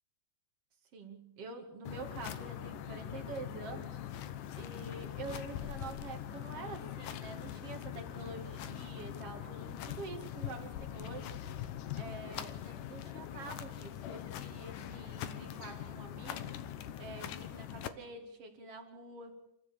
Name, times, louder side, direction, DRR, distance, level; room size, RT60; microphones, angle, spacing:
voice 1, 0.9-11.7 11.9-19.3, right 3 dB, 40° right, 5 dB, 2.6 m, -47 dB
sound 1, 1.9-17.9, left 10 dB, 70° left, 2.0 m, -42 dB
27.0 x 14.5 x 6.9 m, 0.87 s
omnidirectional pair, 5.0 m